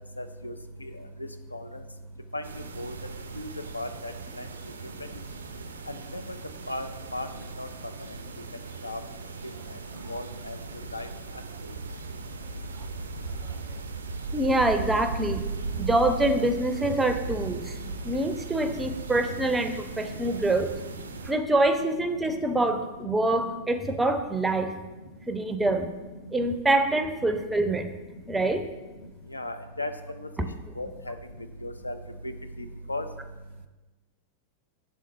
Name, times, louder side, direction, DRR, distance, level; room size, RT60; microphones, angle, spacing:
voice 1, 0.2-0.5 1.5-1.6 2.3-2.4 2.8-2.9 3.4-3.5 3.7-4.1 6.1-6.2 6.7-7.3 7.6-7.7 8.8-9.0 10.1-10.6 10.9-11.1 29.3-29.9 30.8-31.1 31.6-32.0 32.2-32.3 32.9-33.0, left 2 dB, 85° left, 9 dB, 0.4 m, -34 dB
sound 1, 2.4-21.3, right 4 dB, 70° right, 0.4 m, -38 dB
voice 2, 14.3-15.4 15.8-17.7 18.0-20.7 21.2-24.7 25.3-25.9 26.3-27.9 28.3-28.7, right 2 dB, 10° right, 8 dB, 0.4 m, -25 dB
6.3 x 3.6 x 4.1 m, 1.2 s
figure-of-eight pair, 90°, 0 cm